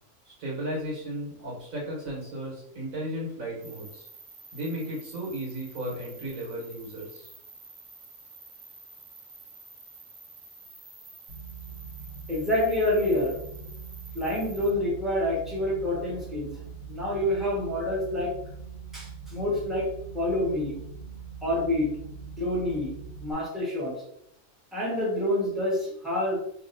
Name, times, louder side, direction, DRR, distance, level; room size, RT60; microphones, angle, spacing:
voice 1, 0.3-4.1 4.5-7.3, right 1 dB, 85° right, -4 dB, 1.6 m, -35 dB
sound 1, 3.6-14.7, right 3 dB, 40° right, 1.3 m, -49 dB
sound 2, 11.3-23.3, right 5 dB, 60° right, 1.1 m, -42 dB
voice 2, 12.3-13.3 14.1-16.5 16.9-18.3 18.9-19.9 20.1-20.8 21.4-21.9 22.2-22.9 23.2-23.9 24.7-26.4, left 1 dB, ahead, -6 dB, 1.0 m, -27 dB
2.9 x 2.7 x 2.6 m, 0.74 s
omnidirectional pair, 1.4 m